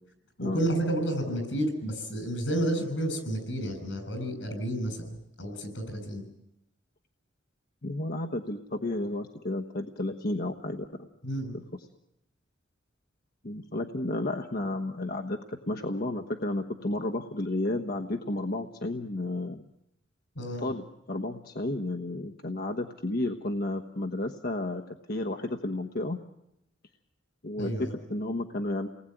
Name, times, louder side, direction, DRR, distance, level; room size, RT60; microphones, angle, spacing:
voice 1, 0.4-6.2 11.2-11.5 20.4-20.7 27.6-27.9, right 1 dB, 85° left, 8 dB, 7.0 m, -31 dB
voice 2, 7.8-11.1 11.5-11.6 13.4-19.6 20.6-24.8 25.1-26.2 27.4-28.9, left 2 dB, 55° left, 4 dB, 1.3 m, -32 dB
29.5 x 20.0 x 9.2 m, 0.87 s
head